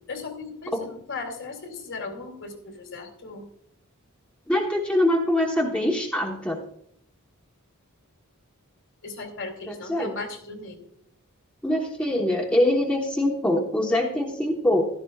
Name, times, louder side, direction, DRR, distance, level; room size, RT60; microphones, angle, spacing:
voice 1, 0.1-3.5 9.0-10.9, left 3 dB, 60° left, 3 dB, 2.8 m, -37 dB
voice 2, 4.5-6.6 9.7-10.1 11.6-14.9, left 1 dB, 5° left, -1 dB, 1.1 m, -23 dB
15.5 x 12.5 x 2.4 m, 0.69 s
head